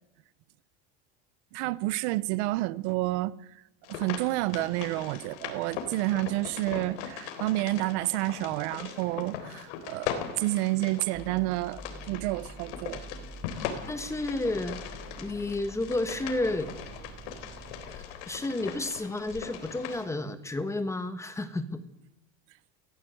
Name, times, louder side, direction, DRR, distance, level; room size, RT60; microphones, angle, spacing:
voice 1, 1.5-3.3 3.9-11.8 12.1-13.0, right 18 dB, 75° right, 1.0 m, -29 dB
sound 1, 3.8-20.1, left 8 dB, 85° left, 3.8 m, -40 dB
sound 2, 11.1-18.0, right 3 dB, 10° right, 2.8 m, -46 dB
voice 2, 13.9-14.8 15.2-16.7 17.9-21.8, left 2 dB, 10° left, 1.4 m, -31 dB
23.5 x 17.0 x 7.9 m
cardioid pair, 155°, 34 cm